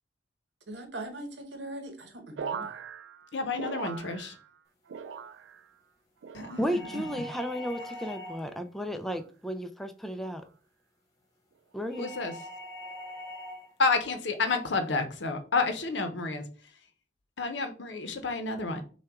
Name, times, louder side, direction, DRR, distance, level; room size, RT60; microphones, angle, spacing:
voice 1, 0.7-2.7, right 1 dB, 70° right, 1.0 m, -40 dB
sound 1, 2.4-4.6 4.9-5.7 6.2-6.9 7.5-8.0 8.9-9.3 10.2-10.5, right 6 dB, 90° right, 0.4 m, -41 dB
voice 2, 3.3-4.3 6.3-7.0 12.0-12.3 13.8-16.4 17.4-18.8, left 3 dB, 75° left, 0.7 m, -30 dB
voice 3, 6.6-10.4 11.7-12.1, equal, ahead, 0.4 m, -33 dB
sound 2, 6.7-8.6 11.9-13.7, left 1 dB, 20° left, 1.3 m, -42 dB
5.8 x 2.3 x 3.5 m
head